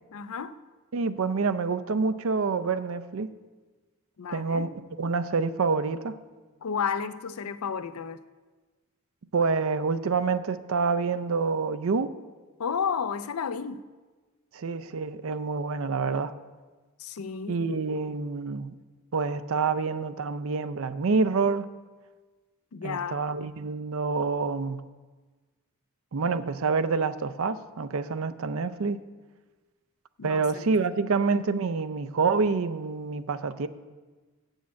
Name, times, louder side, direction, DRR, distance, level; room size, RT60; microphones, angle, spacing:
voice 1, 0.1-0.6 4.2-4.7 6.6-8.2 12.6-13.8 17.0-17.9 22.7-23.2 30.2-30.7, left 6 dB, 75° left, 0.5 m, -32 dB
voice 2, 0.9-3.3 4.3-4.7 5.0-6.2 9.3-12.2 14.5-16.3 17.5-18.7 19.1-21.7 22.8-24.8 26.1-29.0 30.2-33.7, right 4 dB, 65° right, 0.5 m, -27 dB
8.3 x 6.4 x 7.4 m
head